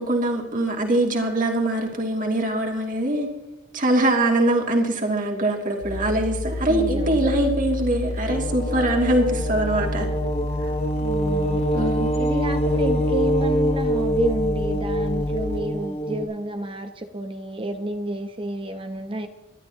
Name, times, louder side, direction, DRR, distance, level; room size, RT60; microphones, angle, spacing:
voice 1, 0.0-3.3 3.7-10.1 10.6-10.7 11.7-12.1, right 1 dB, 40° right, 2 dB, 2.6 m, -23 dB
sound 1, 5.8-15.6, left 2 dB, 55° left, 0.6 m, -30 dB
voice 2, 6.7-7.2 11.0-11.7 12.2-19.3, right 1 dB, 25° right, 6 dB, 0.9 m, -30 dB
sound 2, 8.3-16.2, equal, 30° left, 1.1 m, -25 dB
24.5 x 12.0 x 3.0 m, 1.1 s
head